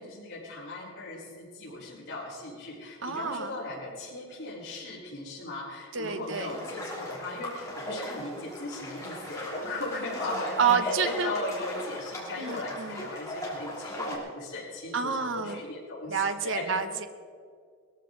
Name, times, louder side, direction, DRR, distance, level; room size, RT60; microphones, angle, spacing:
voice 1, 0.0-16.7, left 2 dB, 75° left, -9 dB, 4.2 m, -38 dB
voice 2, 3.0-3.5 5.9-6.6 10.6-11.3 12.4-13.0 14.9-15.6 16.1-17.1, right 6 dB, 70° right, 8 dB, 1.0 m, -29 dB
sound 1, 6.0-14.2, equal, 15° left, 3.1 m, -37 dB
20.5 x 14.0 x 3.9 m, 2.2 s
head